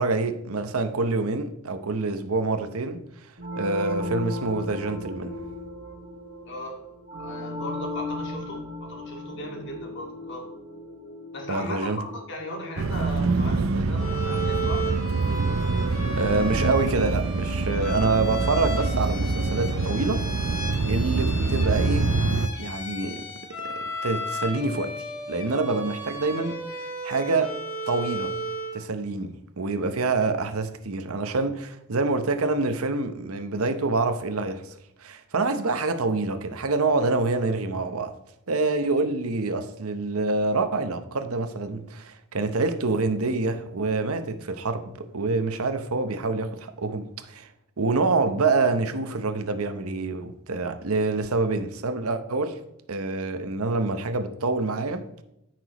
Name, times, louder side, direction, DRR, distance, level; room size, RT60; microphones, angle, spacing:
voice 1, 0.0-3.0 3.6-5.4 11.5-12.0 16.2-20.6 20.9-22.1 22.6-23.3 23.6-24.9 25.3-26.6 27.0-27.5 27.9-28.3 28.7-34.7 35.0-38.1 38.5-47.5 47.8-52.6 52.9-55.1, right 3 dB, 85° right, 0.9 m, -26 dB
sound 1, 3.4-13.8, left 1 dB, 50° right, 2.7 m, -36 dB
voice 2, 6.5-6.8 7.1-10.5 11.3-14.9, left 1 dB, 55° left, 2.1 m, -37 dB
sound 2, 12.8-22.5, right 3 dB, 65° right, 0.5 m, -25 dB
Bowed string instrument, 14.0-28.8, equal, 90° left, 3.8 m, -34 dB
14.0 x 6.1 x 3.0 m
head